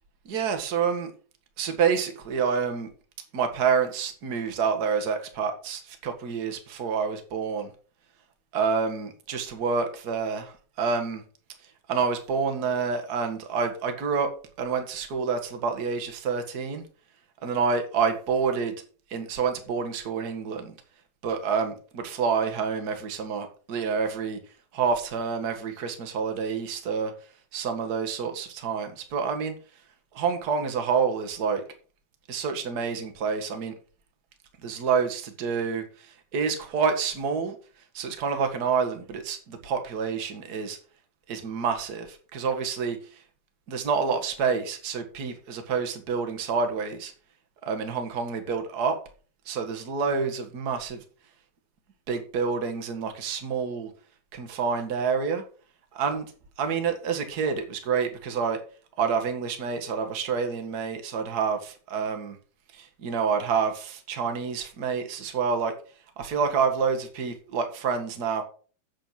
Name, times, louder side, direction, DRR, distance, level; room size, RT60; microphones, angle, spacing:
voice 1, 0.2-1.1 1.6-2.9 3.3-7.7 8.5-11.2 11.9-14.3 14.6-16.8 17.4-18.7 19.1-20.7 21.2-24.4 24.7-27.1 27.5-29.5 30.1-31.6 32.3-33.7 34.6-37.5 37.9-40.8 41.3-43.2 43.7-47.1 47.6-49.0 49.4-51.0 52.1-53.9 54.3-55.4 55.9-56.2 56.6-58.6 59.0-62.4 62.7-65.7 66.2-68.4, right 5 dB, 45° right, 1.3 m, -28 dB
8.5 x 7.6 x 5.9 m
omnidirectional pair, 4.4 m